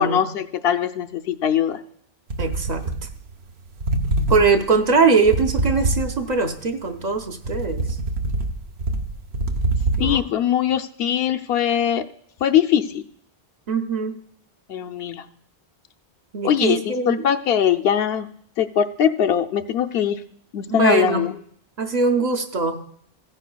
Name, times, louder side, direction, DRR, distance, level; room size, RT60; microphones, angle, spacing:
voice 1, 0.0-1.8 10.0-12.0 12.4-13.0 14.7-15.2 16.4-18.3 18.6-20.2 20.5-21.3, left 9 dB, 75° left, 7 dB, 0.8 m, -21 dB
sound 1, 2.3-3.5 3.8-6.5 6.9-10.2, right 2 dB, 85° right, 1.0 m, -25 dB
voice 2, 2.4-2.8 4.3-8.0 10.0-10.2 13.7-14.2 16.3-17.3 20.7-21.3 21.8-22.8, right 4 dB, 50° right, 4 dB, 0.7 m, -21 dB
15.5 x 9.8 x 2.2 m, 0.66 s
omnidirectional pair, 1.0 m